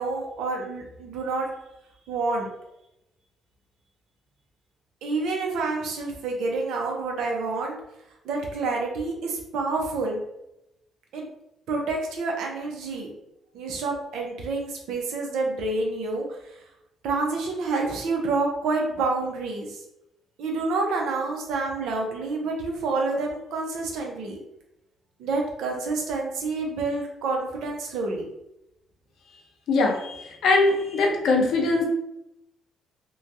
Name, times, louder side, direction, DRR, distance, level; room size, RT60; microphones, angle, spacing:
voice 1, 0.0-1.5 2.1-2.5 5.0-7.8 8.2-10.2 11.1-11.3 11.7-13.1 13.5-16.3 17.0-19.8 20.4-24.4 25.2-28.2, right 3 dB, 85° right, 1 dB, 0.7 m, -28 dB
voice 2, 29.7-31.8, left 3 dB, 75° left, 1 dB, 0.7 m, -22 dB
3.0 x 2.3 x 2.6 m, 0.86 s
cardioid pair, 90°, 0 cm